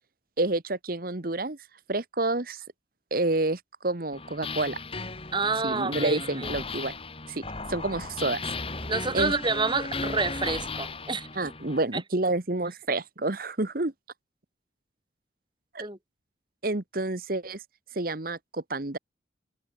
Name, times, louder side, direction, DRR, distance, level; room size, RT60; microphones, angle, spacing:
voice 1, 0.4-1.6 1.9-2.6 3.1-4.8 5.6-6.9 7.3-7.4 7.7-8.4 9.1-9.3 11.3-13.9 15.7-15.9 16.6-17.6 17.9-19.0, right 2 dB, 50° right, 1.4 m, -29 dB
sound 1, 4.1-11.8, left 3 dB, 30° left, 3.7 m, -36 dB
voice 2, 5.3-6.5 8.9-11.3 11.9-12.0 15.8-16.0, right 4 dB, 25° right, 4.7 m, -28 dB
head